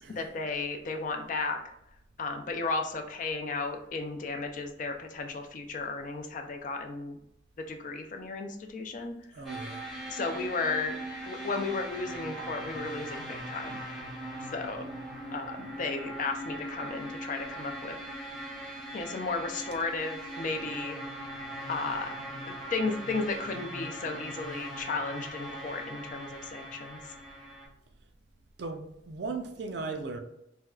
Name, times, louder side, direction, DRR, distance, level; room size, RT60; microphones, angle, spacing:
voice 1, 0.1-1.6 2.2-7.2 7.6-9.4 10.1-11.0 11.2-14.1 14.5-14.9 15.3-18.0 18.9-21.0 21.7-22.2 22.5-27.1, left 3 dB, 40° left, 0.4 m, -34 dB
voice 2, 9.3-9.8 28.6-30.2, right 3 dB, 60° right, 0.4 m, -37 dB
sound 1, 9.4-27.7, right 1 dB, ahead, 0.7 m, -40 dB
4.3 x 2.2 x 2.3 m
head